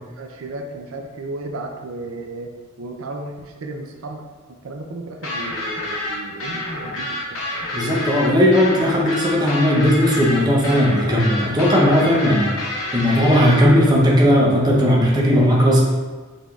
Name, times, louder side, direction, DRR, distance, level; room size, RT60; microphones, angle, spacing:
voice 1, 0.0-2.5 2.8-4.2 4.6-7.4, right 2 dB, 80° right, 3 dB, 0.5 m, -34 dB
sound 1, 5.2-13.6, left 1 dB, 70° left, 0.9 m, -28 dB
voice 2, 7.7-12.5 12.9-15.8, equal, 20° right, -3 dB, 0.7 m, -16 dB
5.8 x 3.5 x 2.4 m, 1.3 s
head